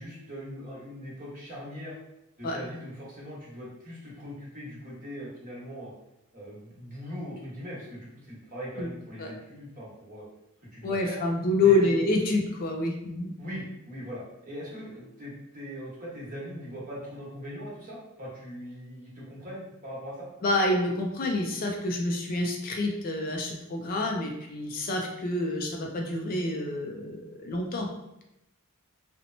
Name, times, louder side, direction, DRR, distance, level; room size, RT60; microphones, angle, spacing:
voice 1, 0.0-1.9 2.4-5.9 6.3-10.2 10.7-11.2 11.6-11.9 13.4-20.3, equal, 40° right, -6 dB, 1.0 m, -40 dB
voice 2, 10.8-13.3 20.4-27.9, left 2 dB, 40° left, 1 dB, 0.4 m, -27 dB
2.8 x 2.1 x 2.6 m, 0.88 s
head